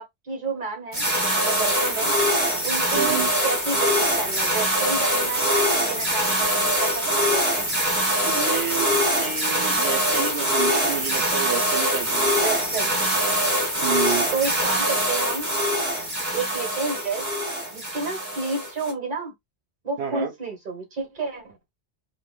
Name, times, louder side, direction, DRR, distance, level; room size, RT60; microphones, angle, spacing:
voice 1, 0.0-2.1 2.6-7.6 12.4-12.9 14.3-15.5 16.3-17.2 17.7-19.3 19.8-21.6, right 4 dB, 50° right, 1.5 m, -30 dB
sound 1, 0.9-18.9, equal, 15° right, 1.7 m, -23 dB
voice 2, 2.9-3.3 8.2-12.3 13.8-14.3 20.0-20.3, right 8 dB, 85° right, 1.0 m, -30 dB
4.2 x 2.2 x 2.3 m
omnidirectional pair, 1.1 m